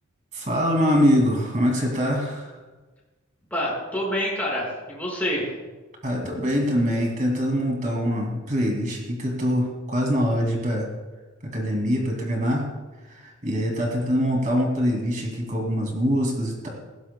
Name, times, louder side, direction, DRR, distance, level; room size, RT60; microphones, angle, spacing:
voice 1, 0.3-2.5 6.0-10.9 11.4-12.7 13.0-16.7, equal, 35° right, 1 dB, 2.4 m, -24 dB
voice 2, 3.5-5.5, equal, 10° left, -5 dB, 5.1 m, -27 dB
19.5 x 16.0 x 2.2 m, 1.3 s
head